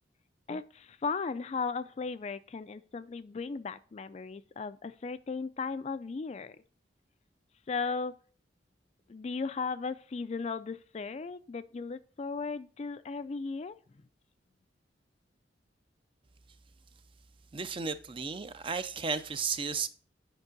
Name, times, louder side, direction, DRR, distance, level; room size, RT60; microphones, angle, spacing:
voice 1, 0.5-6.6 7.7-8.1 9.1-13.8, left 4 dB, 35° left, 0.3 m, -36 dB
voice 2, 17.5-19.9, right 5 dB, 30° right, 0.4 m, -34 dB
8.0 x 5.3 x 3.8 m
head